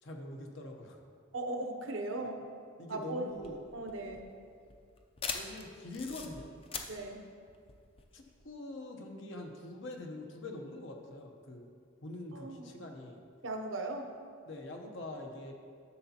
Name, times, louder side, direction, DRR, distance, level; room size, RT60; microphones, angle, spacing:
voice 1, 0.0-1.0 2.8-3.6 5.3-6.5 8.1-11.7 12.0-13.2 14.5-15.5, left 2 dB, 65° left, 2 dB, 0.9 m, -44 dB
voice 2, 1.3-2.4 2.9-3.3 3.7-4.2 6.9-7.2 12.3-12.7 13.4-14.1, right 2 dB, 70° right, 4 dB, 0.7 m, -38 dB
sound 1, 3.3-8.5, left 5 dB, 30° left, 0.5 m, -43 dB
11.0 x 6.8 x 2.9 m, 2.3 s
head